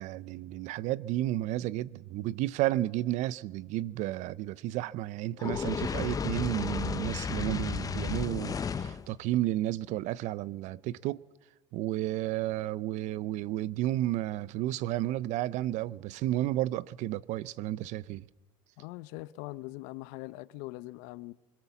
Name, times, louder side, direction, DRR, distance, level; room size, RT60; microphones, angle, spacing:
voice 1, 0.0-11.2 11.7-18.3, right 15 dB, 60° right, 0.7 m, -32 dB
Fire, 5.4-9.1, left 6 dB, 25° left, 0.9 m, -33 dB
voice 2, 18.8-21.3, left 19 dB, 70° left, 0.8 m, -42 dB
25.0 x 17.5 x 7.3 m
supercardioid pair, 90°, 14 cm